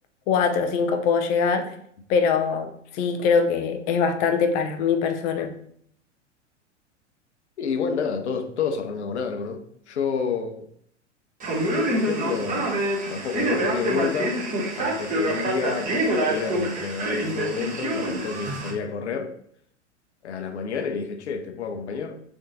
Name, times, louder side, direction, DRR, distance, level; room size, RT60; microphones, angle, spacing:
voice 1, 0.3-1.7 2.1-5.5, left 5 dB, 20° left, 0.3 m, -23 dB
voice 2, 7.6-10.7 11.7-14.5 14.8-19.3 20.2-22.2, left 6 dB, 65° left, 0.7 m, -29 dB
Male speech man speaking, 11.4-18.7, right 1 dB, 20° right, 1.1 m, -26 dB
3.6 x 3.5 x 4.0 m
figure-of-eight pair, 95°, 36 cm